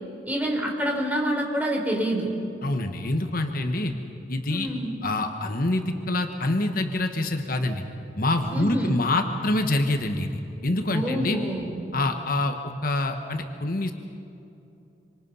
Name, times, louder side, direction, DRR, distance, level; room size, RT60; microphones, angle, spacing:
voice 1, 0.3-2.3 4.5-5.0 8.5-9.0 10.9-11.8, right 1 dB, 10° right, -1 dB, 4.1 m, -27 dB
voice 2, 2.6-3.9 4.3-4.7 5.0-7.8 8.2-11.4 11.9-13.9, left 2 dB, 55° left, 5 dB, 1.3 m, -26 dB
27.0 x 25.0 x 5.6 m, 2.8 s
head